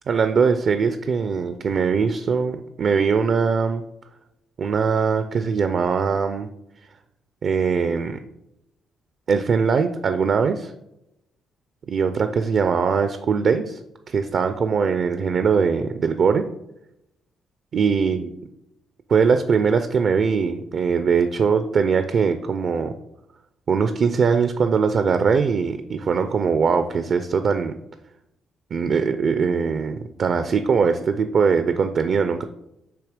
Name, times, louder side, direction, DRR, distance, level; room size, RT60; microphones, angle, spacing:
voice 1, 0.1-3.8 4.6-6.5 7.4-8.2 9.3-10.7 11.9-13.8 14.1-16.5 17.7-18.3 19.1-22.9 23.7-27.7 28.7-32.4, right 5 dB, 55° right, 9 dB, 0.4 m, -21 dB
6.9 x 2.8 x 5.0 m, 0.84 s
cardioid pair, 90°, 0 cm